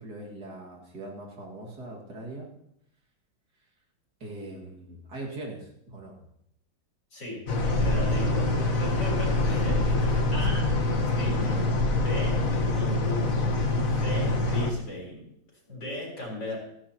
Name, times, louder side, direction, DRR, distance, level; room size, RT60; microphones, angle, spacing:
voice 1, 0.0-2.5 4.2-6.2 8.2-8.8 10.2-10.6, right 2 dB, 60° right, -1 dB, 2.7 m, -41 dB
voice 2, 7.1-7.4 7.8-8.4 8.8-10.7 11.2-13.5 14.0-15.2 15.7-16.6, left 1 dB, 75° left, -1 dB, 4.8 m, -37 dB
sound 1, 7.5-14.7, left 2 dB, 50° left, 1.7 m, -25 dB
17.5 x 14.0 x 2.9 m, 0.76 s
omnidirectional pair, 2.0 m